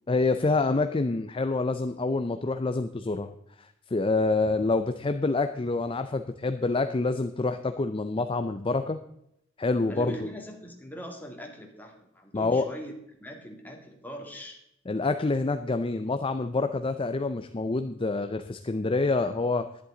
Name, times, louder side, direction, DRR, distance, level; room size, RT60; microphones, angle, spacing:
voice 1, 0.1-3.3 3.6-9.0 9.6-10.2 12.3-12.7 14.9-19.7, left 3 dB, 25° left, 9 dB, 0.5 m, -27 dB
voice 2, 9.9-12.9 13.2-14.6, equal, 10° left, 0 dB, 2.2 m, -41 dB
11.0 x 11.0 x 3.9 m, 0.78 s
head